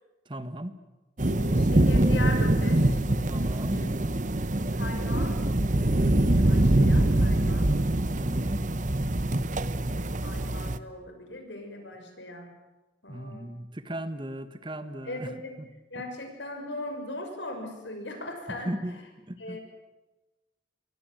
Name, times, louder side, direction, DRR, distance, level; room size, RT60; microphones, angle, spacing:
voice 1, 0.3-0.8 3.3-3.9 8.1-8.7 13.1-15.7 18.5-19.0 19.3-19.6, right 1 dB, 25° right, 11 dB, 1.4 m, -36 dB
voice 2, 1.2-3.0 3.7-3.9 4.7-5.4 5.7-7.7 9.9-12.5 13.0-13.5 15.0-15.5 15.9-18.7 19.4-19.6, left 2 dB, 75° left, 5 dB, 6.5 m, -39 dB
sound 1, 1.2-10.8, right 1 dB, 40° right, 1.0 m, -24 dB
28.0 x 23.5 x 7.8 m, 1.1 s
head